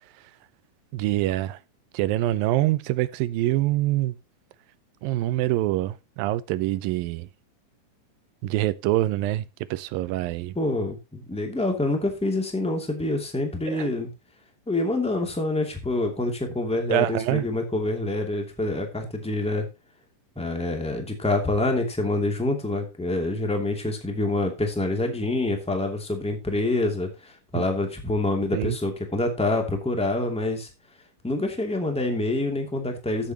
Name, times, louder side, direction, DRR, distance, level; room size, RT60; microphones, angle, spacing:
voice 1, 0.9-1.6 1.9-4.2 5.0-7.3 8.4-9.5 9.7-10.5 13.7-13.9 16.9-17.5 27.5-27.7 28.5-28.8, right 15 dB, 85° right, 2.4 m, -25 dB
voice 2, 10.5-14.1 14.7-19.7 20.4-30.7 31.2-33.3, left 2 dB, ahead, 1.9 m, -26 dB
14.0 x 8.1 x 2.9 m
omnidirectional pair, 4.1 m